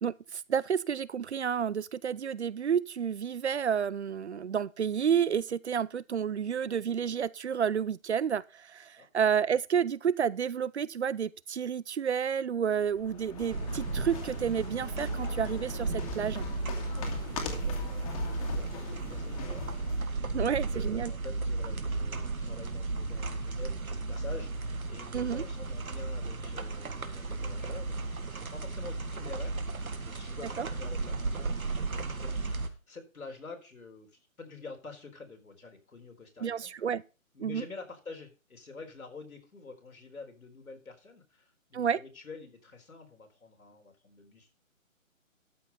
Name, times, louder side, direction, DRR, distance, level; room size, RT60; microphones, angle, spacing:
voice 1, 0.0-16.5 20.3-21.1 25.1-25.4 30.6-30.7 36.4-37.0 37.4-37.6 41.7-42.0, right 7 dB, 55° right, 0.5 m, -30 dB
sound 1, 12.9-20.1, left 6 dB, 25° left, 2.0 m, -41 dB
sound 2, 13.5-32.7, right 3 dB, 85° right, 1.8 m, -34 dB
voice 2, 16.9-36.9 37.3-44.5, left 3 dB, 85° left, 4.1 m, -48 dB
13.0 x 5.6 x 5.5 m
hypercardioid pair, 155°, 41 cm